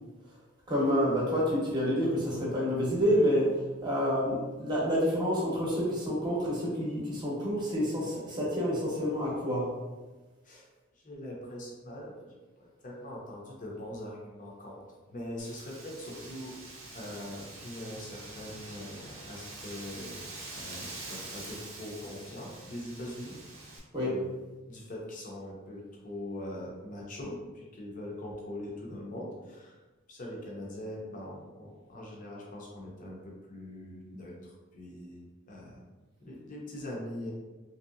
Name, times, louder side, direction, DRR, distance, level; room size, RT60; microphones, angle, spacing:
voice 1, 0.7-9.7 23.9-24.2, equal, 20° right, -6 dB, 0.9 m, -28 dB
voice 2, 10.9-14.8 15.1-16.6 16.9-20.2 20.5-23.3 24.0-24.3 24.7-29.8 30.1-35.8 36.2-37.3, left 1 dB, 40° left, -3 dB, 0.7 m, -42 dB
Wind, 15.4-23.8, right 2 dB, 80° right, 0.8 m, -45 dB
3.0 x 2.7 x 2.6 m, 1.2 s
head